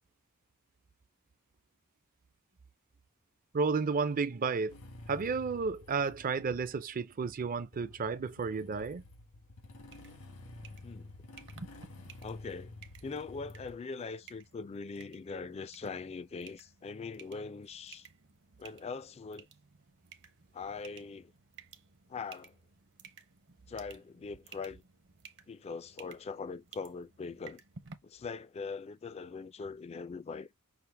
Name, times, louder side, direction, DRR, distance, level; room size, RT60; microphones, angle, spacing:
voice 1, 3.5-4.8 5.1-9.0, right 4 dB, 40° right, 0.4 m, -32 dB
Motorcycle / Engine starting, 4.7-13.8, left 2 dB, 80° left, 1.3 m, -51 dB
sound 1, 9.8-27.9, right 5 dB, 55° right, 0.8 m, -56 dB
voice 2, 12.2-12.7 13.0-18.1 18.6-19.5 20.5-21.3 22.1-22.6 23.7-24.8 25.5-27.6 28.0-30.5, left 4 dB, 30° left, 0.3 m, -41 dB
5.8 x 2.1 x 3.3 m
head